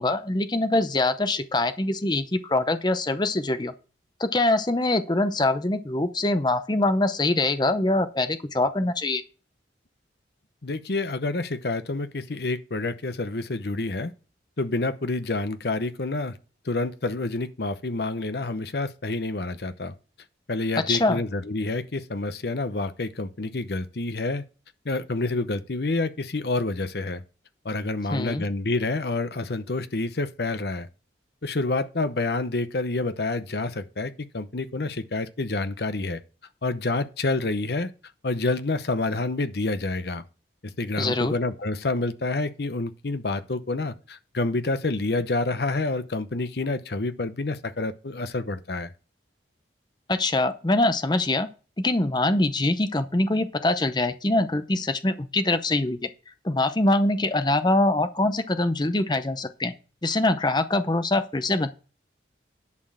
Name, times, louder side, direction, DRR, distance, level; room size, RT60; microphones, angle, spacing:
voice 1, 0.0-3.7 4.2-9.2 20.8-21.2 28.1-28.4 41.0-41.3 50.1-51.5 51.8-56.1 56.4-59.7 60.0-61.7, left 2 dB, 25° left, 0.7 m, -24 dB
voice 2, 10.6-14.1 14.6-16.4 16.6-19.9 20.5-24.4 24.8-27.2 27.6-30.9 31.4-36.2 36.6-37.9 38.2-40.2 40.8-48.9, left 2 dB, 60° left, 0.8 m, -28 dB
11.0 x 4.5 x 7.3 m
head